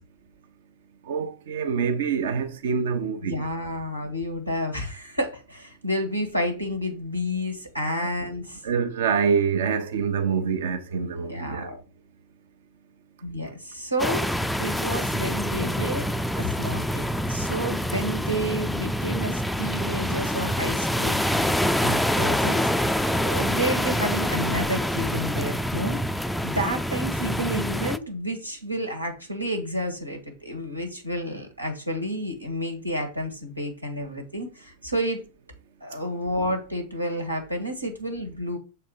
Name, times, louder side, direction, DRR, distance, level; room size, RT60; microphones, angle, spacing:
voice 1, 1.1-3.4 7.9-8.1 8.6-11.7, right 6 dB, 60° right, 1.0 m, -26 dB
voice 2, 3.2-8.6 11.3-11.8 13.2-16.1 16.4-26.0 26.4-35.2 35.8-38.6, equal, 90° right, 1.9 m, -30 dB
sound 1, 14.0-28.0, equal, 5° left, 0.4 m, -26 dB
6.9 x 4.2 x 5.6 m
figure-of-eight pair, 90°, 0 cm